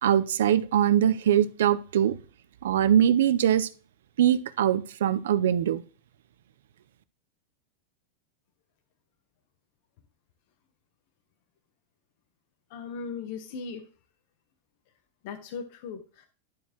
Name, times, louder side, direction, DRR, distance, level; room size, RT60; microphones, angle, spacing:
voice 1, 0.0-2.1 2.6-3.7 4.2-5.8, right 10 dB, 85° right, 0.5 m, -22 dB
voice 2, 12.7-13.8 15.2-16.3, left 5 dB, 60° left, 0.9 m, -38 dB
11.5 x 4.6 x 2.9 m
supercardioid pair, 145°, 0 cm